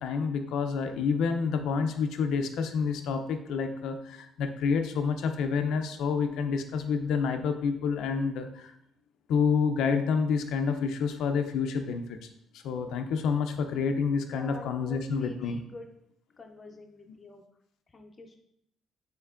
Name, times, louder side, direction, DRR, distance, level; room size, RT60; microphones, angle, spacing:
voice 1, 0.0-8.7 9.3-12.3 12.5-15.6 17.1-17.2, left 5 dB, 80° left, 6 dB, 0.4 m, -28 dB
voice 2, 14.3-15.9 16.4-17.4 17.9-18.4, left 3 dB, 25° left, 3 dB, 0.5 m, -47 dB
5.6 x 3.6 x 2.4 m, 0.75 s
cardioid pair, 150°, 0 cm